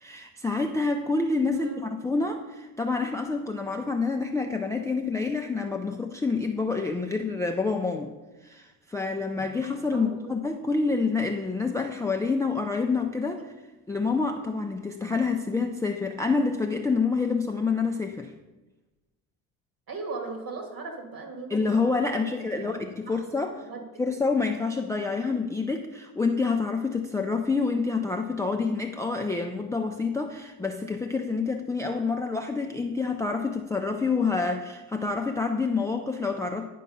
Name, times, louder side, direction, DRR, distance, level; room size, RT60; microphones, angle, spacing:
voice 1, 0.0-8.1 8.4-13.4 13.9-18.3 21.5-23.5 24.0-36.7, left 4 dB, 5° left, 4 dB, 0.4 m, -27 dB
voice 2, 1.5-1.9 9.4-9.5 9.9-10.4 19.9-22.8 23.1-23.8, right 3 dB, 45° right, 3 dB, 2.4 m, -39 dB
10.0 x 4.6 x 5.3 m, 1.1 s
hypercardioid pair, 70°, 49 cm